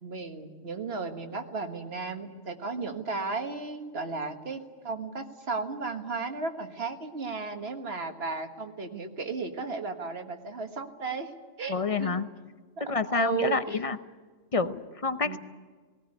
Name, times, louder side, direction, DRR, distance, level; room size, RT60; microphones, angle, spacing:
voice 1, 0.0-11.3 11.6-12.2 13.1-13.6 15.2-15.4, right 4 dB, 55° right, 5 dB, 1.8 m, -34 dB
voice 2, 11.7-12.3 12.9-14.0 14.5-15.4, left 4 dB, 35° left, 11 dB, 0.7 m, -28 dB
19.0 x 18.5 x 9.8 m, 1.4 s
omnidirectional pair, 1.3 m